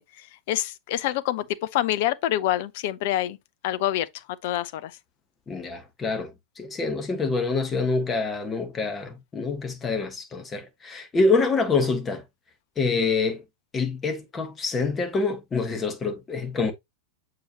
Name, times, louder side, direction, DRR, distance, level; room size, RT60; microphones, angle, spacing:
voice 1, 0.0-1.5 1.7-3.4 3.6-4.1 4.4-4.9, left 13 dB, 50° left, 0.5 m, -26 dB
voice 2, 5.5-6.3 6.6-12.2 12.8-13.4 13.7-16.7, left 4 dB, 20° left, 1.4 m, -26 dB
7.0 x 4.7 x 2.9 m
figure-of-eight pair, 90°, 0 cm